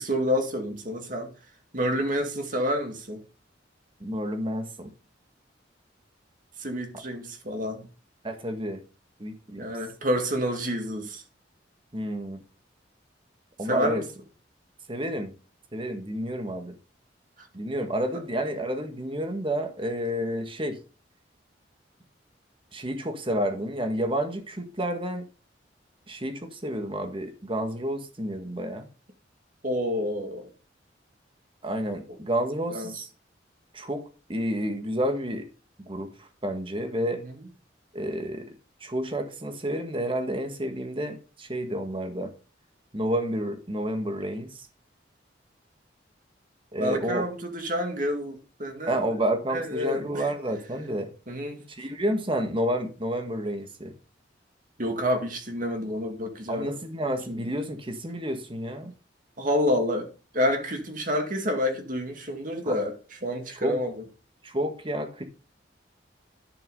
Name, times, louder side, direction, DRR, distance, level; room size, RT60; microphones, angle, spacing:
voice 1, 0.0-1.3 1.7-3.2 6.6-7.9 9.6-11.2 13.7-14.0 29.6-30.5 32.7-32.9 37.1-37.3 46.8-49.0 49.5-50.3 51.3-51.6 54.8-56.7 57.3-57.4 59.4-60.1 60.3-62.9 63.2-64.0, equal, 45° right, 2.2 m, -28 dB
voice 2, 4.0-4.9 8.2-8.8 9.2-9.7 11.9-12.4 13.6-14.0 14.9-15.3 15.7-16.7 17.5-20.8 22.7-25.2 26.1-28.9 31.6-33.1 33.7-35.5 35.8-37.2 37.9-38.5 38.8-42.3 42.9-44.7 46.7-47.2 48.9-51.1 51.7-53.9 56.5-58.9 62.7-62.8 63.6-63.8 64.4-65.2, equal, 30° right, 1.7 m, -30 dB
11.0 x 5.9 x 5.4 m
head